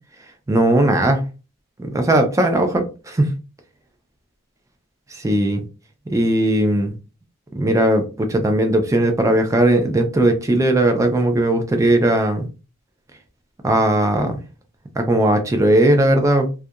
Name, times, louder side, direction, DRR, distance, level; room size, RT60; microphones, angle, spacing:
voice 1, 0.5-1.2 1.8-3.3 5.1-5.6 6.1-6.9 7.6-12.5 13.6-14.4 15.0-16.5, right 1 dB, 15° right, 0.3 m, -18 dB
2.3 x 2.2 x 2.7 m
head